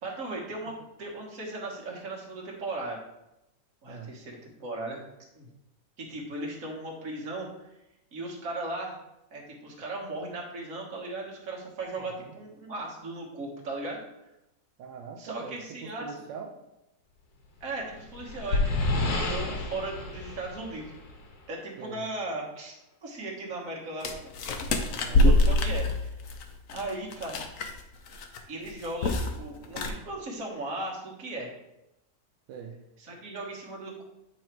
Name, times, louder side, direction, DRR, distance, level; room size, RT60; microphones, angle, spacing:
voice 1, 0.0-3.0 3.8-5.0 5.3-5.5 6.0-7.7 8.1-9.0 9.3-14.0 15.2-16.2 17.6-20.9 21.5-24.3 25.1-26.1 26.7-27.4 28.5-31.5 33.0-34.0, right 2 dB, 50° right, -2 dB, 1.7 m, -37 dB
voice 2, 3.9-4.2 12.0-12.3 14.8-16.6 21.8-22.0 24.9-25.3 32.5-32.8, right 6 dB, 80° right, 0 dB, 1.3 m, -43 dB
sound 1, 17.7-21.4, left 2 dB, 80° left, 1.7 m, -30 dB
sound 2, 24.0-27.8 28.1-28.4 28.7-29.4 29.6-29.9, left 1 dB, 60° left, 0.9 m, -24 dB
8.8 x 3.1 x 4.5 m, 0.90 s
omnidirectional pair, 2.0 m